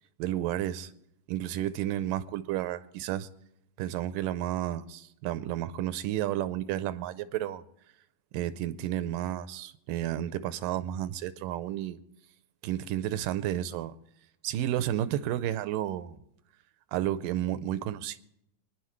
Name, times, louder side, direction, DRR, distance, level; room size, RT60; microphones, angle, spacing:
voice 1, 0.2-0.9 1.3-3.3 3.8-7.6 8.3-12.0 12.6-14.0 14.4-16.2 16.9-18.2, right 12 dB, 90° right, 2.3 m, -31 dB
25.5 x 10.0 x 3.1 m
omnidirectional pair, 3.8 m